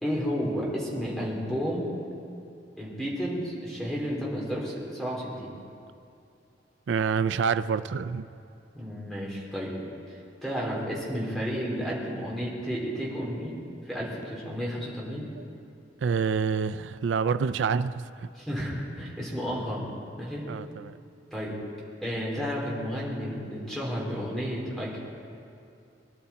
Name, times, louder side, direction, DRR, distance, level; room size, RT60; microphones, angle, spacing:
voice 1, 0.0-1.9 2.8-5.5 8.7-9.8 10.1-13.5 13.9-15.2 18.3-19.9 20.2-20.5 21.3-21.6 22.0-25.0, equal, ahead, -5 dB, 3.4 m, -32 dB
voice 2, 6.9-8.3 15.4-15.5 16.0-18.3 20.5-21.0, right 6 dB, 90° right, 13 dB, 0.4 m, -27 dB
23.5 x 11.5 x 4.3 m, 2.7 s
head